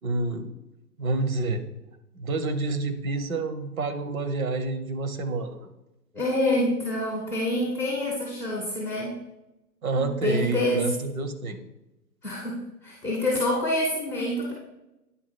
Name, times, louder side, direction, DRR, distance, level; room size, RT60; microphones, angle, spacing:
voice 1, 0.0-0.5 1.0-1.6 2.1-5.7 9.8-11.6, right 3 dB, 55° right, 8 dB, 1.0 m, -28 dB
voice 2, 6.1-9.1 9.9-10.9 12.2-12.6 12.8-14.5, left 1 dB, 5° right, -10 dB, 0.4 m, -26 dB
9.1 x 3.7 x 4.9 m, 0.92 s
figure-of-eight pair, 130°, 48 cm